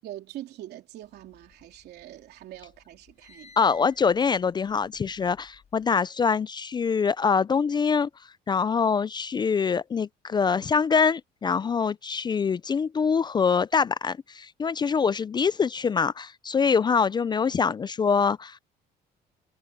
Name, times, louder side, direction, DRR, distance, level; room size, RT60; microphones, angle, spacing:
voice 1, 0.0-3.6, right 13 dB, 75° right, 3.2 m, -43 dB
sound 1, 1.2-2.2 2.5-6.0, left 3 dB, 40° left, 4.8 m, -55 dB
voice 2, 3.6-8.1 8.5-18.6, left 5 dB, 25° left, 0.4 m, -24 dB
cardioid pair, 110°, 17 cm